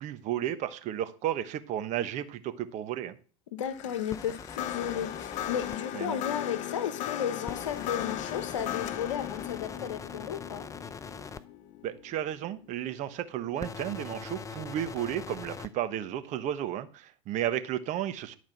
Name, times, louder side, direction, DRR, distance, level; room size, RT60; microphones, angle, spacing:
voice 1, 0.0-3.2 5.9-6.2 11.8-18.3, right 11 dB, 50° right, 11 dB, 1.2 m, -33 dB
voice 2, 3.5-10.6, left 9 dB, 80° left, 12 dB, 1.0 m, -34 dB
sound 1, 3.7-13.0, left 11 dB, 50° left, 0.9 m, -38 dB
sound 2, 4.1-5.8 7.5-11.4 13.6-15.7, left 5 dB, 20° left, 0.7 m, -42 dB
11.0 x 4.8 x 6.0 m, 0.38 s
hypercardioid pair, 85°, 16 cm